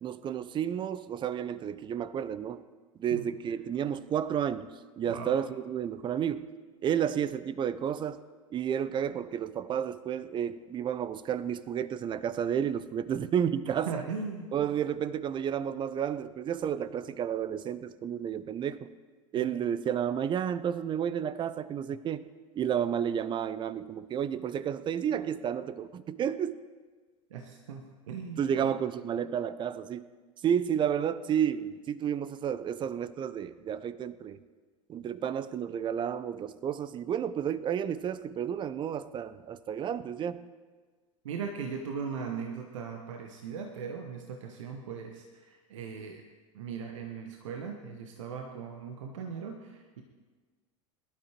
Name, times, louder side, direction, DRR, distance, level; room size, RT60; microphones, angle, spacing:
voice 1, 0.0-2.6 3.0-6.5 6.8-8.2 8.5-14.0 14.5-18.9 19.3-22.3 22.5-26.6 28.4-30.1 30.4-34.4 34.9-40.4, right 9 dB, 25° right, 15 dB, 0.6 m, -31 dB
voice 2, 13.9-14.5 19.4-19.5 27.3-28.7 41.2-46.2 46.5-50.0, right 6 dB, 65° right, 3 dB, 1.2 m, -39 dB
22.0 x 12.5 x 3.1 m, 1.4 s
figure-of-eight pair, 80°, 17 cm